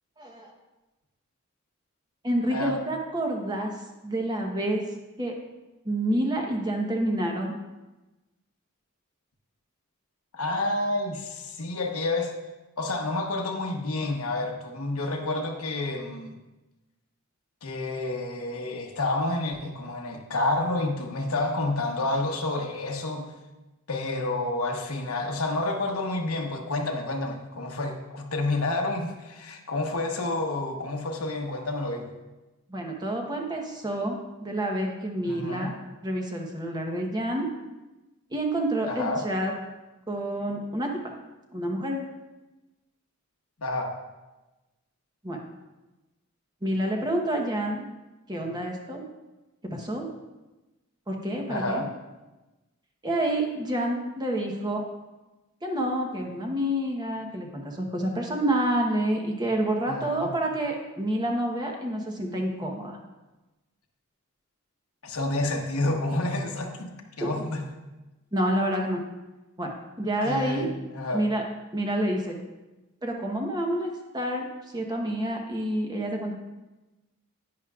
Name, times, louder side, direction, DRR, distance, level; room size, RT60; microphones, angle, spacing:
voice 1, 0.2-0.5 2.2-3.7 4.0-4.8 5.2-5.4 5.8-7.6 32.7-35.7 36.0-37.5 38.3-39.5 40.1-41.0 41.5-42.1 45.2-45.4 46.6-47.9 48.3-49.1 49.6-50.1 51.1-51.9 53.0-54.8 55.6-63.0 67.2-67.3 68.3-69.0 69.6-69.7 70.0-70.7 71.1-71.4 71.7-72.4 73.0-74.5 74.7-76.3, right 1 dB, 20° right, 1 dB, 1.0 m, -28 dB
voice 2, 10.3-12.3 12.8-16.3 17.6-23.3 23.9-32.1 35.3-35.7 38.9-39.3 43.6-43.9 51.5-51.9 59.9-60.3 65.0-67.6 70.2-71.2, left 2 dB, 85° left, 3 dB, 1.1 m, -29 dB
10.5 x 10.0 x 2.4 m, 1.1 s
head